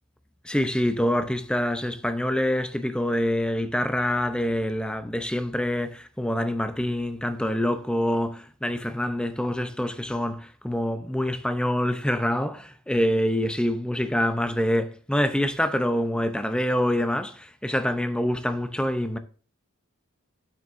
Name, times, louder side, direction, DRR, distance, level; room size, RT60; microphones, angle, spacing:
voice 1, 0.4-19.2, left 1 dB, 5° left, 0.5 m, -26 dB
9.8 x 7.3 x 2.5 m
head